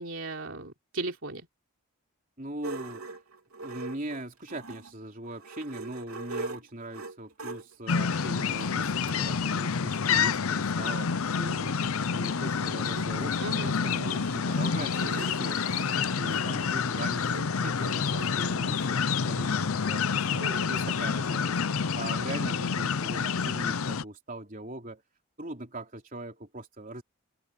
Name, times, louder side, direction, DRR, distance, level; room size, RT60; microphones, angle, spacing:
voice 1, 0.0-1.4 13.4-13.7 20.4-20.7, right 3 dB, 60° right, 3.4 m, -36 dB
voice 2, 2.4-3.1 3.6-15.6 16.2-21.6 22.0-25.0 25.4-27.0, right 1 dB, 35° right, 3.6 m, -41 dB
sound 1, 2.6-4.9 5.3-9.2 10.0-10.1 10.4-10.5 10.6-18.9, right 3 dB, 80° right, 3.4 m, -42 dB
sound 2, 7.9-24.0, left 6 dB, 70° left, 0.6 m, -28 dB
head